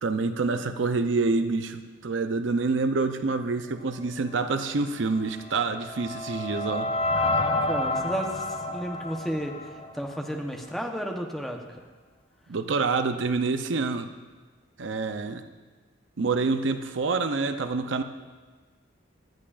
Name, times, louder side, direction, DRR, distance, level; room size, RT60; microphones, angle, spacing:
voice 1, 0.0-6.9 12.5-14.1 14.8-15.4 16.2-18.0, right 4 dB, 65° right, 8 dB, 0.6 m, -27 dB
sound 1, 5.2-10.4, left 2 dB, 30° left, 0.5 m, -29 dB
voice 2, 7.6-11.6, equal, ahead, 1 dB, 0.9 m, -33 dB
18.5 x 12.5 x 2.5 m, 1.4 s
head